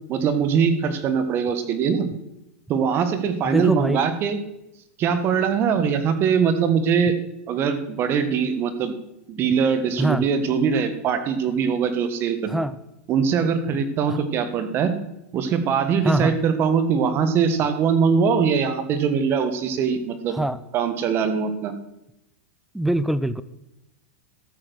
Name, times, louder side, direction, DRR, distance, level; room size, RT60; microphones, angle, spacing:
voice 1, 0.1-2.1 2.7-4.4 5.0-7.1 7.5-8.9 9.3-12.5 13.1-14.9 15.3-20.4 20.7-21.7, right 6 dB, 30° right, 9 dB, 1.5 m, -22 dB
voice 2, 3.4-4.0 10.0-10.2 12.5-12.8 14.1-14.2 16.0-16.4 20.3-20.6 22.7-23.4, right 1 dB, 5° right, 16 dB, 0.4 m, -23 dB
13.5 x 7.5 x 6.3 m, 0.87 s
supercardioid pair, 150°, 8 cm